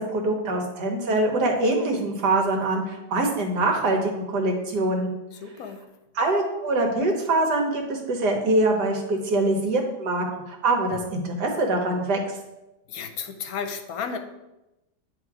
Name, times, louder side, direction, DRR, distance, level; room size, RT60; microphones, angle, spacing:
voice 1, 0.0-5.1 6.2-12.4, right 2 dB, 85° right, 2 dB, 1.7 m, -24 dB
voice 2, 5.4-5.9 12.9-14.2, left 6 dB, 70° left, 7 dB, 1.0 m, -33 dB
9.1 x 3.2 x 4.7 m, 0.97 s
omnidirectional pair, 1.7 m